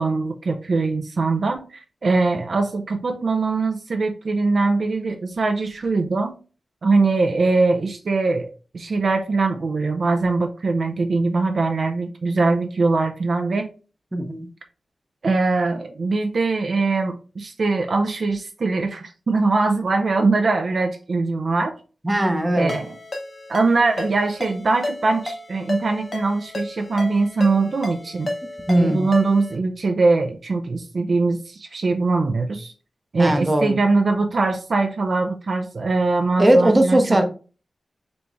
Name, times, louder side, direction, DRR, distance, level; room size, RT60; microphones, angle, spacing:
voice 1, 0.0-6.3 6.8-13.7 15.2-21.7 22.5-22.9 23.5-28.3 28.8-32.7 33.1-37.2, right 3 dB, 55° right, 4 dB, 0.5 m, -22 dB
voice 2, 14.1-14.5 22.0-22.7 28.7-29.1 33.2-33.8 36.4-37.2, right 1 dB, 20° right, 5 dB, 0.7 m, -18 dB
Ringtone, 22.7-29.6, left 1 dB, 35° left, 0.8 m, -33 dB
4.0 x 3.4 x 3.0 m, 0.36 s
wide cardioid pair, 145°, 0 cm